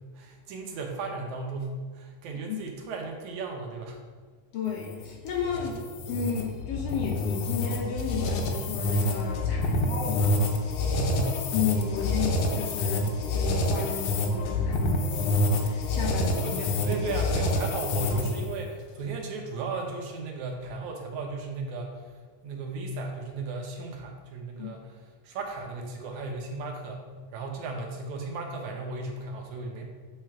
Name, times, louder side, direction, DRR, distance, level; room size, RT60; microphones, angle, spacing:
voice 1, 0.2-4.0 5.5-5.8 9.7-9.9 10.8-11.4 16.4-22.0 22.4-24.8 25.2-27.0 27.3-29.8, right 3 dB, 80° right, 2 dB, 2.3 m, -35 dB
voice 2, 4.5-10.4 11.5-16.6 24.6-24.7, left 7 dB, 70° left, -1 dB, 1.7 m, -33 dB
sound 1, 4.7-18.5, left 2 dB, 85° left, 2.2 m, -27 dB
7.3 x 4.9 x 4.4 m, 1.5 s
omnidirectional pair, 3.3 m